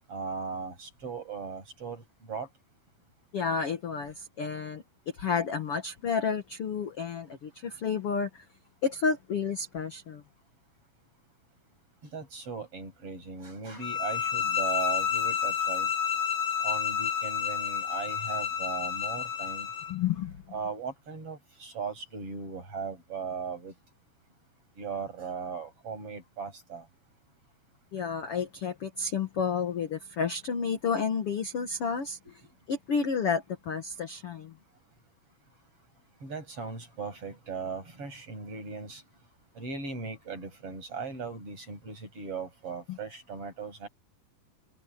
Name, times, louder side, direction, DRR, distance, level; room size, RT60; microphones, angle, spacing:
voice 1, 0.1-2.5 12.1-15.9 16.6-19.7 20.5-23.7 24.8-26.9 32.3-32.4 36.2-39.0 39.6-43.9, right 5 dB, 30° right, 8.8 m, -38 dB
voice 2, 3.3-4.8 5.1-8.4 8.8-10.2 19.9-20.4 27.9-32.2 32.7-34.5 42.9-43.0, left 6 dB, 55° left, 1.6 m, -31 dB
sound 1, 13.8-19.9, left 7 dB, 90° left, 1.3 m, -30 dB
omnidirectional pair, 5.0 m